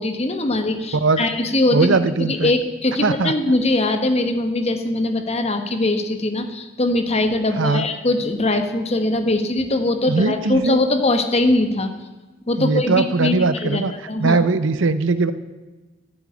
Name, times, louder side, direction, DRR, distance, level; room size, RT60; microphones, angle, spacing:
voice 1, 0.0-11.9 12.5-13.8 14.1-14.4, left 2 dB, 30° left, 7 dB, 1.3 m, -21 dB
voice 2, 1.7-2.5 3.0-3.3 7.6-7.8 10.1-10.8 12.6-13.9 14.2-15.3, right 3 dB, 65° right, 14 dB, 0.7 m, -20 dB
13.0 x 8.9 x 8.5 m, 1.2 s
head